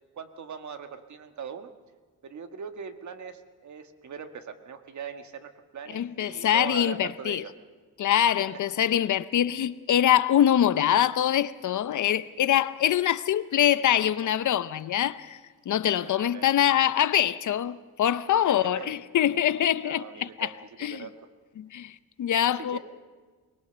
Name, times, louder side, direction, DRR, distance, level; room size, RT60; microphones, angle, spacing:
voice 1, 0.1-1.7 2.2-7.5 8.4-8.5 16.0-16.6 18.5-19.0 19.8-21.1 22.4-22.8, right 7 dB, 50° right, 1.6 m, -41 dB
voice 2, 5.9-7.4 8.0-15.4 15.7-20.5 20.8-21.0 21.6-22.8, left 11 dB, 55° left, 0.7 m, -24 dB
23.0 x 20.0 x 6.9 m
cardioid pair, 110°, 36 cm